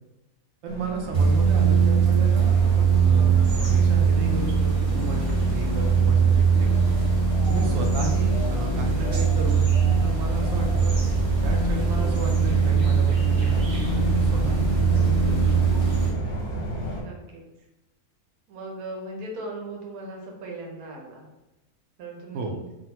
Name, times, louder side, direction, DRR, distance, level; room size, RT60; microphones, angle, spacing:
voice 1, 0.6-6.8 7.5-10.9 11.4-15.5 22.3-22.5, right 2 dB, 70° right, 1 dB, 0.9 m, -34 dB
sound 1, 0.7-17.0, equal, 55° left, 0.7 m, -36 dB
sound 2, 1.1-16.1, right 5 dB, 40° right, 0.5 m, -21 dB
voice 2, 16.9-17.4 18.5-21.3 22.0-22.6, right 2 dB, 85° right, 0 dB, 1.2 m, -38 dB
3.8 x 2.1 x 2.8 m, 0.98 s
omnidirectional pair, 1.5 m